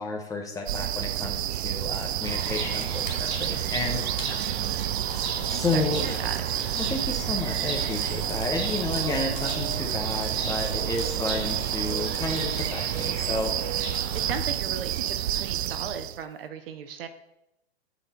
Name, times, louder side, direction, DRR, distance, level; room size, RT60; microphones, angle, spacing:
voice 1, 0.0-4.3 5.5-6.2 6.7-13.5, left 3 dB, 10° left, 2 dB, 1.0 m, -31 dB
sound 1, 0.7-16.2, right 12 dB, 75° right, 0.5 m, -29 dB
sound 2, 2.2-14.4, right 3 dB, 35° right, 1.8 m, -36 dB
sound 3, 2.4-2.5 3.1-4.4 5.1-6.7 7.1-7.2 7.6-7.7 8.0-10.0 10.3-10.4 11.0-12.7, left 4 dB, 30° left, 2.6 m, -43 dB
voice 2, 4.3-4.9 5.5-6.4 14.1-17.1, right 7 dB, 60° right, 10 dB, 0.9 m, -37 dB
13.0 x 4.3 x 4.3 m, 0.85 s
hypercardioid pair, 135°, 33 cm